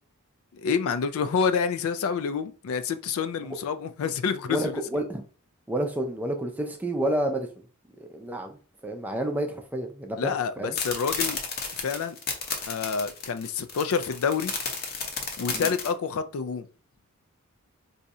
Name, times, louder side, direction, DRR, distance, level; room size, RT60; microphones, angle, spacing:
voice 1, 0.5-4.8 10.2-11.4 11.8-12.2 12.7-14.5 15.4-16.7, left 6 dB, 65° left, 0.4 m, -28 dB
voice 2, 4.5-5.2 5.7-7.5 8.0-8.6 8.8-10.8 15.5-15.7, right 1 dB, 10° right, 0.4 m, -30 dB
sound 1, 10.7-15.9, left 5 dB, 45° left, 0.7 m, -32 dB
2.7 x 2.4 x 4.1 m
head